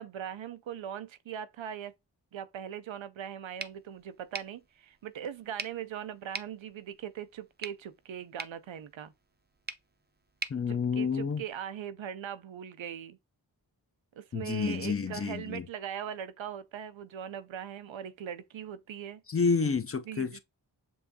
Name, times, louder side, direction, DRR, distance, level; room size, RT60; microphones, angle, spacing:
voice 1, 0.0-1.9 2.3-9.1 10.7-13.2 14.1-19.2 20.1-20.4, right 9 dB, 85° right, 0.5 m, -40 dB
sound 1, 3.6-11.6, right 3 dB, 25° right, 0.5 m, -45 dB
voice 2, 10.5-11.4 14.3-15.7 19.3-20.4, left 5 dB, 35° left, 0.4 m, -29 dB
7.1 x 2.6 x 2.6 m
cardioid pair, 45°, 45 cm